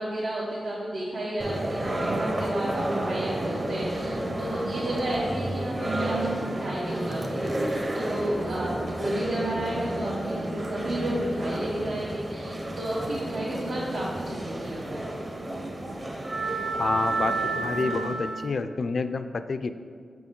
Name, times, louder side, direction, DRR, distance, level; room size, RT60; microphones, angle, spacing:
voice 1, 0.0-8.7 9.0-15.0, right 1 dB, 80° right, -8 dB, 1.3 m, -32 dB
sound 1, 1.4-18.5, right 2 dB, 35° right, 0.9 m, -31 dB
voice 2, 16.8-19.7, left 4 dB, 60° left, 10 dB, 0.3 m, -29 dB
7.0 x 6.0 x 3.7 m, 2.1 s
wide cardioid pair, 95°, 0 cm